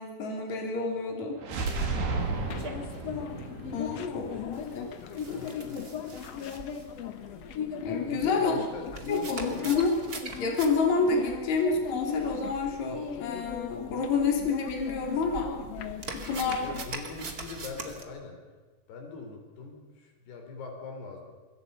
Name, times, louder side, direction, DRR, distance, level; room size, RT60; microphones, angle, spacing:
voice 1, 0.0-1.4 3.7-4.9 7.8-8.6 9.1-9.9 10.4-15.5 16.1-16.7, left 4 dB, 45° left, 2 dB, 4.4 m, -29 dB
sound 1, 1.4-5.3, right 3 dB, 80° right, 5.2 m, -33 dB
sound 2, 2.2-18.0, right 3 dB, 30° right, 2.0 m, -44 dB
sound 3, 2.5-16.8, left 7 dB, 70° left, 1.5 m, -38 dB
voice 2, 3.9-4.6 5.2-5.8 8.0-9.7 16.5-18.4 18.9-21.2, left 4 dB, 85° left, 3 dB, 5.8 m, -42 dB
26.0 x 22.0 x 5.6 m, 1.4 s
omnidirectional pair, 4.6 m